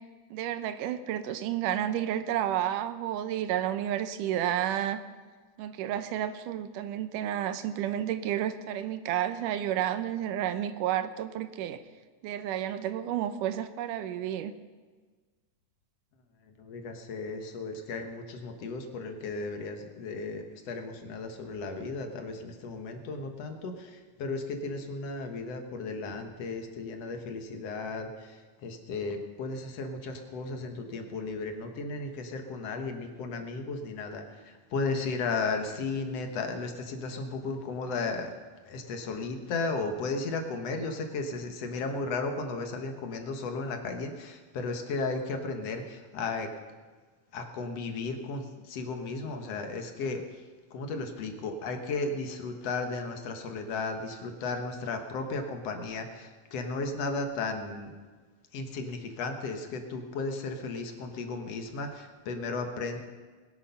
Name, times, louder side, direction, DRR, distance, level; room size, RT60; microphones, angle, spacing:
voice 1, 0.3-5.0 5.6-11.8 12.2-14.5, right 11 dB, 80° right, 11 dB, 2.3 m, -31 dB
voice 2, 16.6-38.3 38.6-46.5 47.3-50.2 50.7-57.9 58.5-63.0, left 3 dB, 60° left, 5 dB, 2.2 m, -35 dB
21.0 x 8.6 x 5.7 m, 1.4 s
omnidirectional pair, 3.7 m